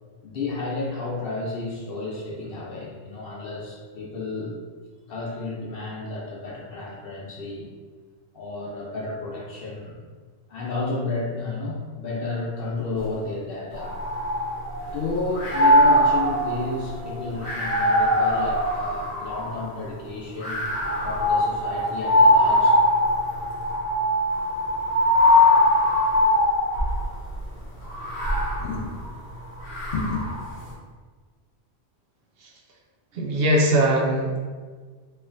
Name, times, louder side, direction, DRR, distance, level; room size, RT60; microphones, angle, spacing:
voice 1, 0.2-4.6 5.1-7.7 8.3-10.0 10.5-14.0 14.9-20.7 21.0-22.8 28.6-29.0 29.9-30.2, left 3 dB, 65° left, -4 dB, 0.9 m, -31 dB
sound 1, 13.7-14.9 15.3-19.7 20.4-27.1 27.8-30.4, left 1 dB, 85° left, 1.5 m, -21 dB
voice 2, 33.1-34.4, right 1 dB, 70° right, -1 dB, 0.8 m, -21 dB
4.2 x 3.0 x 2.5 m, 1.5 s
omnidirectional pair, 1.1 m